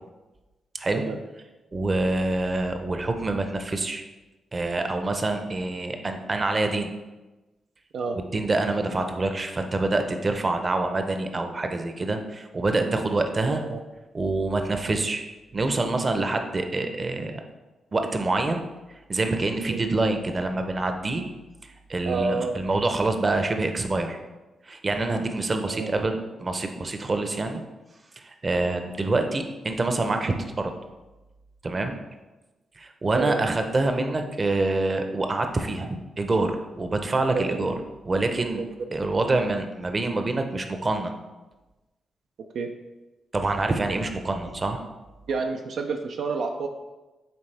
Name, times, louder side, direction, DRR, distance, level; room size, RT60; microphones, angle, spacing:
voice 1, 0.7-1.1 1.7-4.0 4.5-6.9 8.1-13.7 14.1-15.2 15.5-17.4 17.9-18.6 19.1-21.2 21.6-24.2 24.6-27.6 28.2-30.7 31.6-32.0 32.8-37.7 38.0-38.6 38.9-41.1 43.3-44.8, right 2 dB, 40° right, 6 dB, 0.7 m, -26 dB
voice 2, 13.5-13.8 19.7-19.8 22.0-22.6 25.7-26.0 33.1-33.5 37.3-37.6 38.6-38.7 42.5-42.7 45.3-46.7, right 4 dB, 75° right, 3 dB, 0.4 m, -29 dB
8.7 x 3.4 x 3.3 m, 1.1 s
supercardioid pair, 60°, 0 cm